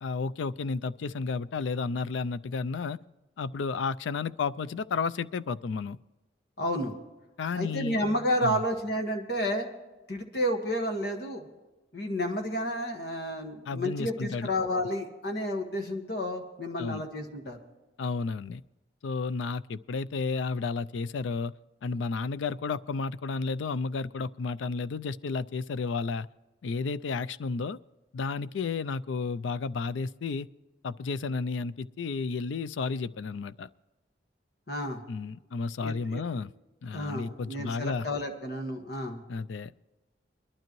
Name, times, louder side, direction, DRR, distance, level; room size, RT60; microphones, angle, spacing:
voice 1, 0.0-3.0 3.4-6.0 7.4-8.0 8.4-8.6 13.7-14.5 16.8-17.0 18.0-18.6 19.0-21.5 21.8-26.3 26.6-27.8 28.1-30.5 30.8-33.7 35.1-36.5 36.8-38.1 39.3-39.8, left 4 dB, 80° left, 16 dB, 0.4 m, -32 dB
voice 2, 6.6-6.9 7.5-9.7 10.1-11.5 11.9-17.6 34.7-35.0 35.8-36.2 36.9-39.2, equal, 55° left, 5 dB, 1.6 m, -31 dB
22.0 x 12.0 x 3.1 m, 1.1 s
head